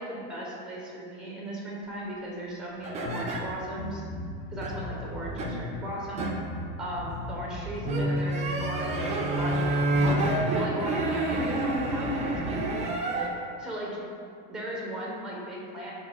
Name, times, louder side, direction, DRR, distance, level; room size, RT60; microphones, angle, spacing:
voice 1, 0.0-4.0 4.5-6.3 6.8-12.7 13.6-14.0 14.5-15.9, right 1 dB, ahead, -4 dB, 0.9 m, -37 dB
sound 1, 2.8-3.4 4.6-4.8 5.4-5.5 6.2-6.3 7.8-13.3, right 1 dB, 20° right, 0.4 m, -28 dB
sound 2, 3.1-12.7, left 2 dB, 55° left, 0.6 m, -38 dB
4.7 x 2.4 x 4.3 m, 2.3 s
supercardioid pair, 135°, 35 cm